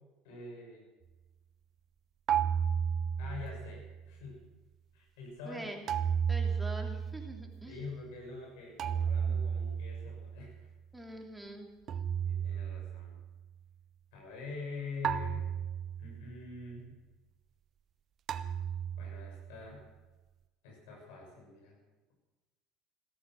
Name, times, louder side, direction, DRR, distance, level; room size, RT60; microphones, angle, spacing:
voice 1, 0.2-0.8 3.2-4.4 4.9-5.6 7.7-10.7 12.2-13.2 14.1-15.5 16.0-16.9 19.0-19.8 20.6-21.8, left 4 dB, 75° left, 0 dB, 6.5 m, -45 dB
sound 1, 2.3-4.1 5.9-7.7 8.8-10.6 11.9-13.3 15.0-16.3 18.3-19.5, right 7 dB, 50° right, 0.8 m, -33 dB
voice 2, 5.4-5.8 6.3-7.8 10.9-11.7, right 1 dB, 5° right, 2 dB, 3.0 m, -44 dB
15.5 x 13.5 x 6.2 m, 1.2 s
hypercardioid pair, 80°, 0 cm